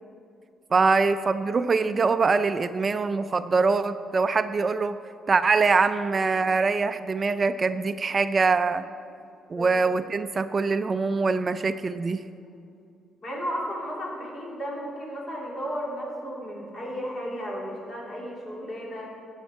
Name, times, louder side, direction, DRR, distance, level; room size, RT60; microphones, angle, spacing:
voice 1, 0.7-5.0 5.3-8.8 9.5-12.2, right 4 dB, 35° right, 11 dB, 0.3 m, -23 dB
voice 2, 13.2-19.1, equal, 45° left, -3 dB, 3.0 m, -34 dB
14.0 x 7.3 x 4.4 m, 2.5 s
cardioid pair, 90°, 0 cm